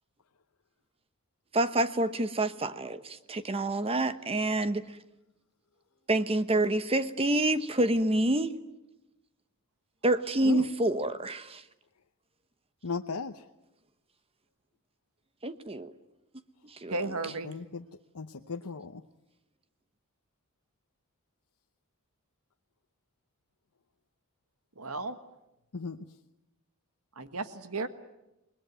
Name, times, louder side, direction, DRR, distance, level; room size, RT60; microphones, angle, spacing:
voice 1, 1.5-5.0 6.1-8.5 10.0-11.6 15.4-15.9 16.6-17.4, right 1 dB, 25° right, 1.0 m, -28 dB
voice 2, 12.8-13.5 17.4-17.8 18.1-19.0 25.7-26.1, left 4 dB, 85° left, 0.9 m, -36 dB
voice 3, 16.9-17.5 24.7-25.2 27.1-27.9, right 3 dB, 75° right, 1.6 m, -34 dB
29.5 x 21.0 x 9.4 m
head